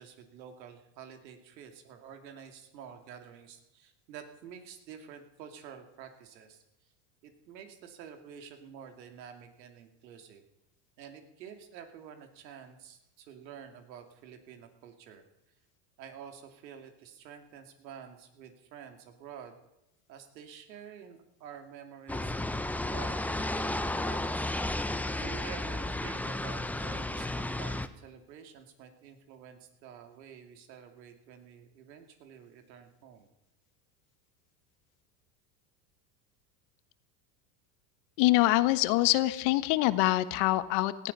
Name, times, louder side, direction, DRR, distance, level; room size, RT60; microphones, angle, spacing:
voice 1, 0.0-6.6 7.2-10.4 11.0-15.2 16.0-19.6 20.1-22.3 22.9-24.5 25.2-33.3, right 8 dB, 85° right, 6 dB, 2.6 m, -49 dB
sound 1, 22.1-27.9, left 1 dB, 5° left, 0.8 m, -33 dB
voice 2, 38.2-41.1, left 18 dB, 65° left, 13 dB, 1.3 m, -25 dB
18.5 x 14.5 x 5.5 m, 0.87 s
supercardioid pair, 105°, 49 cm